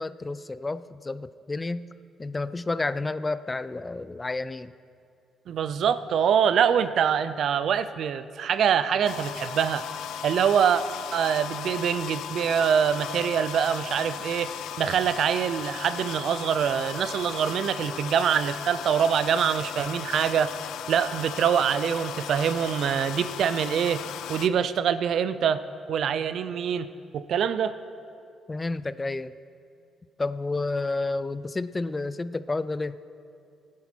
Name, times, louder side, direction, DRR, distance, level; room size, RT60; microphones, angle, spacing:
voice 1, 0.0-1.9 2.2-4.7 28.5-29.3 30.2-33.0, left 3 dB, 20° left, 15 dB, 0.4 m, -30 dB
voice 2, 5.5-9.8 10.2-10.8 11.1-14.5 14.8-20.5 20.9-24.0 24.3-25.6 25.9-27.8, right 8 dB, 70° right, 13 dB, 0.5 m, -24 dB
sound 1, 9.1-24.5, left 9 dB, 85° left, 0.5 m, -37 dB
16.5 x 9.6 x 4.5 m, 2.5 s
cardioid pair, 90°, 0 cm